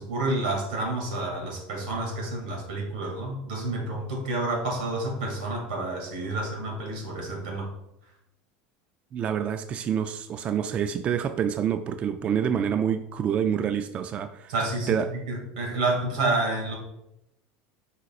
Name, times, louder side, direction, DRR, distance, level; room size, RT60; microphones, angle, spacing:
voice 1, 0.0-7.7 14.5-14.9 15.3-16.7, right 2 dB, 85° right, 1 dB, 2.1 m, -29 dB
voice 2, 9.1-14.5 14.9-15.1, right 8 dB, 30° right, 9 dB, 0.3 m, -27 dB
8.2 x 5.3 x 2.4 m, 0.87 s
supercardioid pair, 135°, 4 cm